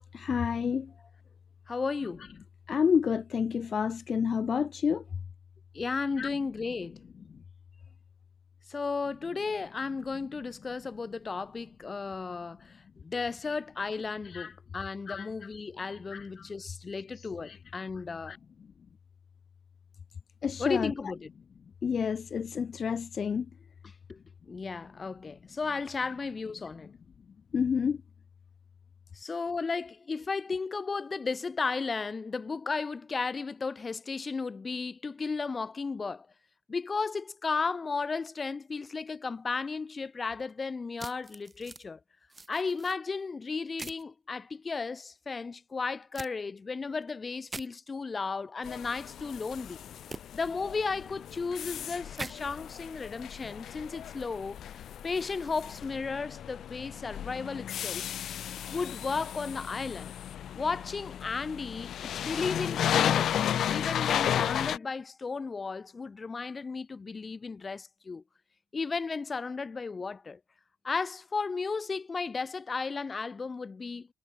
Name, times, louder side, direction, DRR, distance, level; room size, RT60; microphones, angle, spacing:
voice 1, 0.1-0.9 2.7-5.0 6.2-6.3 14.3-14.5 15.1-15.3 15.9-16.5 17.2-17.6 18.3-18.4 20.4-20.9 21.8-23.5 27.5-28.0, left 6 dB, 50° left, 3.7 m, -29 dB
voice 2, 1.7-2.3 5.7-7.0 8.7-18.4 20.6-21.3 23.8-24.2 24.5-26.9 29.1-36.3 36.7-42.0 42.5-49.8 50.3-54.7 55.0-58.1 58.7-60.1 60.5-63.4 63.7-68.2 68.7-70.4 70.8-74.1, left 4 dB, 30° left, 7.1 m, -34 dB
sound 1, 41.0-41.8 42.3-43.0 43.8-44.0 46.1-46.3 47.5-47.7 50.1-50.2 52.1-52.3, right 3 dB, 25° right, 5.7 m, -41 dB
sound 2, 48.6-64.8, left 10 dB, 65° left, 3.3 m, -34 dB
cardioid pair, 90°, 0 cm